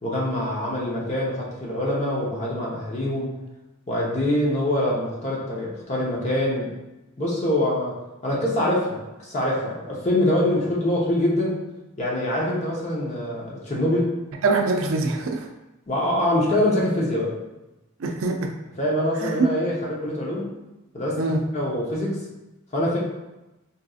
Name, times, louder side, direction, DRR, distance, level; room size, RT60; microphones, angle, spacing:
voice 1, 0.0-3.3 3.9-6.7 7.2-7.9 8.2-11.6 12.0-14.1 15.9-17.3 18.8-20.5 20.9-21.2 21.5-22.2 22.7-23.0, left 1 dB, 30° left, -4 dB, 0.8 m, -24 dB
voice 2, 14.4-15.5 18.0-18.5 19.2-19.5 21.2-21.4, right 3 dB, 65° right, 3 dB, 0.4 m, -23 dB
4.0 x 2.6 x 2.4 m, 1.0 s
head